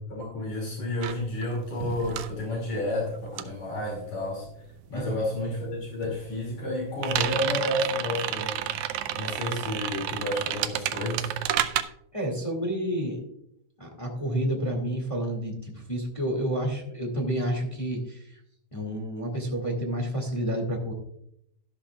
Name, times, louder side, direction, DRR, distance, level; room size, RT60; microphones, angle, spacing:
voice 1, 0.1-4.5 4.9-8.7 9.1-11.3, left 1 dB, 65° left, -2 dB, 3.8 m, -31 dB
sound 1, 1.0-4.8 5.1-11.8, right 12 dB, 85° right, 1.9 m, -31 dB
voice 2, 4.9-5.3 11.7-13.2 13.8-18.4 18.7-20.9, right 1 dB, 15° left, 0 dB, 1.5 m, -30 dB
12.5 x 12.5 x 2.4 m, 0.75 s
omnidirectional pair, 3.4 m